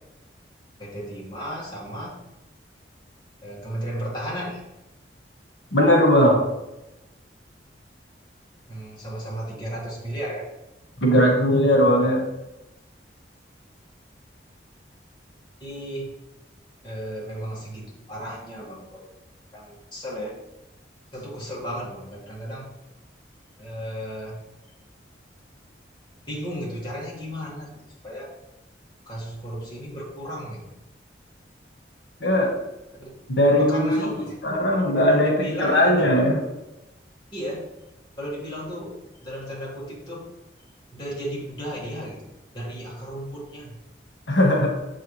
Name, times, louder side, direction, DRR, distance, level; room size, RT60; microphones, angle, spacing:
voice 1, 0.8-2.1 3.4-4.6 8.7-10.5 15.6-16.1 16.8-19.1 19.5-20.4 21.1-22.7 23.6-24.4 26.3-28.3 29.1-30.7 33.0-33.1 33.5-34.4 35.1-36.2 37.3-37.7 38.2-39.0 39.2-40.3 40.9-42.2 42.5-43.8, equal, 25° left, -5 dB, 1.8 m, -34 dB
voice 2, 5.7-6.4 11.0-12.2 32.2-32.5 33.3-34.1 34.4-36.4 44.3-44.7, equal, 75° left, 0 dB, 1.4 m, -19 dB
7.9 x 4.7 x 3.2 m, 0.94 s
head